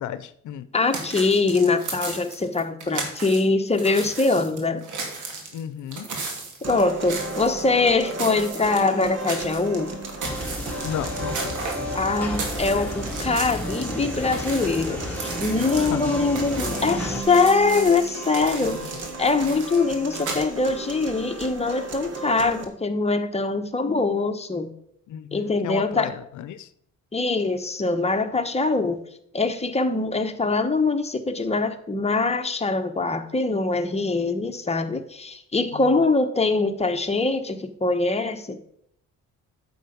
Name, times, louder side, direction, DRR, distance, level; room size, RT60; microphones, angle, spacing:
voice 1, 0.0-0.7 5.5-6.1 10.8-11.6 15.8-16.1 18.6-18.8 25.1-26.7 35.7-35.8, left 9 dB, 75° left, 14 dB, 0.7 m, -34 dB
voice 2, 0.7-4.8 6.7-9.9 11.9-18.8 19.2-24.7 25.3-26.1 27.1-29.0 29.3-38.7, left 3 dB, 20° left, 6 dB, 1.2 m, -23 dB
sound 1, 0.9-3.4 3.7-7.7 8.0-9.8 10.0-13.8 14.1-20.4, right 3 dB, 80° right, 2.6 m, -35 dB
sound 2, 6.6-22.6, right 2 dB, 55° right, 1.9 m, -35 dB
sound 3, 10.2-17.2, left 1 dB, 5° left, 2.1 m, -33 dB
9.2 x 7.0 x 5.2 m, 0.69 s
cardioid pair, 90°, 30 cm